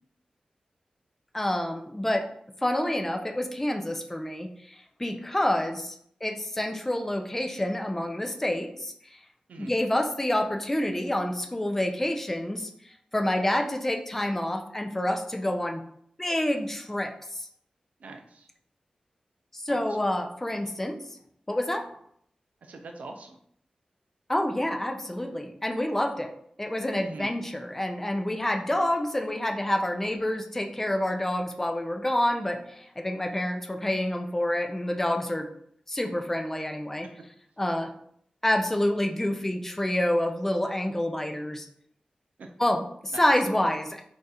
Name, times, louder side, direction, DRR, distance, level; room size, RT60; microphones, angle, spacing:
voice 1, 1.3-2.3 2.6-9.2 9.6-12.7 13.1-15.8 16.2-17.5 19.5-21.0 21.5-21.9 24.3-35.5 35.9-37.1 37.6-37.9 38.4-41.7 42.6-44.0, left 1 dB, 15° left, 4 dB, 0.4 m, -28 dB
voice 2, 18.0-18.5 19.7-19.8 22.6-23.4 27.0-27.4 42.4-42.5 43.1-43.2, right 3 dB, 90° right, 4 dB, 0.4 m, -42 dB
2.5 x 2.3 x 4.0 m, 0.67 s
wide cardioid pair, 105°, 2 cm